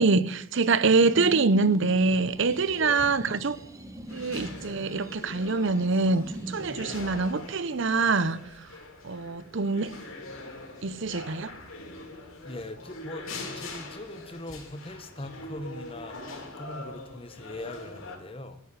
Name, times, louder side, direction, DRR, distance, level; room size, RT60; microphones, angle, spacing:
voice 1, 0.0-3.6 4.1-8.4 9.0-9.9 10.8-11.5, right 3 dB, 60° right, 0.8 m, -25 dB
sound 1, 0.9-7.0, right 1 dB, 15° right, 1.0 m, -42 dB
sound 2, 4.1-18.2, left 2 dB, 90° left, 3.5 m, -43 dB
voice 2, 12.4-18.6, left 1 dB, 25° left, 1.2 m, -41 dB
13.0 x 8.2 x 9.7 m
head